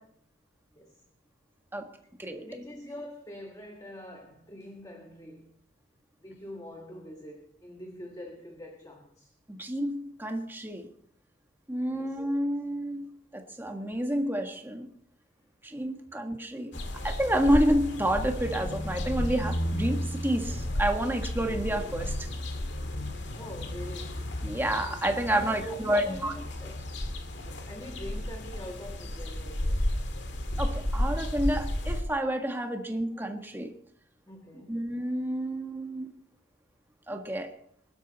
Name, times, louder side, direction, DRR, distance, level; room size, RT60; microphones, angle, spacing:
voice 1, 2.2-5.6 6.2-9.3 11.9-12.2 23.0-24.3 25.3-26.9 27.7-29.9 34.3-34.9, equal, 15° left, 2 dB, 1.6 m, -44 dB
voice 2, 9.5-10.9 11.7-14.9 15.6-16.7 17.0-22.3 24.4-26.3 30.6-33.7 34.7-36.1 37.1-37.6, right 1 dB, 10° right, 4 dB, 1.6 m, -29 dB
sound 1, 16.7-32.0, left 1 dB, 60° left, 2.1 m, -33 dB
22.0 x 12.5 x 4.2 m, 0.64 s
head